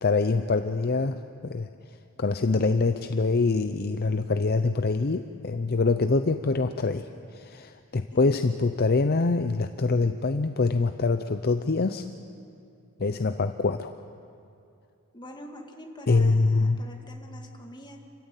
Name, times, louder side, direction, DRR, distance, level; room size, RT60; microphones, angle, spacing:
voice 1, 0.0-1.7 2.2-7.1 7.3-12.0 13.0-14.0 16.1-16.8, left 3 dB, 45° left, 9 dB, 0.6 m, -25 dB
voice 2, 8.1-8.8 15.1-18.0, equal, 20° left, 2 dB, 2.2 m, -45 dB
28.5 x 14.5 x 9.1 m, 2.6 s
head